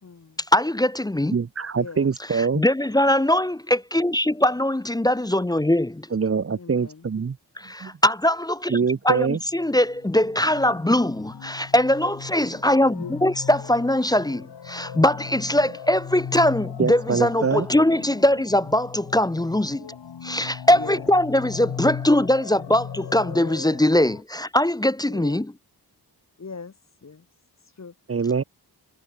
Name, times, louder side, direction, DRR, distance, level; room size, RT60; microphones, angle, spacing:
voice 1, 0.0-0.4 1.7-2.6 6.5-7.1 20.7-21.0 21.4-21.8 25.1-25.4 26.4-26.7 27.0-27.3 27.6-27.9, left 4 dB, 40° left, 2.4 m, -41 dB
voice 2, 0.5-1.3 2.6-6.1 7.6-8.8 9.0-19.9 20.2-25.5, left 1 dB, 10° left, 0.5 m, -21 dB
voice 3, 1.3-2.6 6.1-7.4 7.8-7.9 8.7-9.4 16.8-17.7 28.1-28.4, right 5 dB, 35° right, 0.8 m, -24 dB
sound 1, 9.5-24.2, left 7 dB, 80° left, 2.0 m, -38 dB
wide cardioid pair, 130°, 40 cm